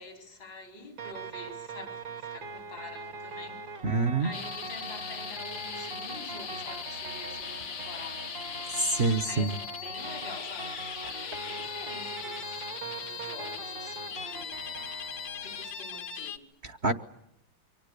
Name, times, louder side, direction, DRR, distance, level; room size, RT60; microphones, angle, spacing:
voice 1, 0.0-3.7 4.2-15.1 15.4-16.5, left 3 dB, 80° left, 5.2 m, -47 dB
sound 1, 1.0-15.7, right 3 dB, 75° right, 2.8 m, -42 dB
voice 2, 3.8-4.3 8.7-9.5 16.6-16.9, right 3 dB, 40° right, 1.2 m, -26 dB
sound 2, 4.3-16.4, left 7 dB, 65° left, 1.7 m, -39 dB
29.0 x 24.5 x 6.8 m
omnidirectional pair, 2.1 m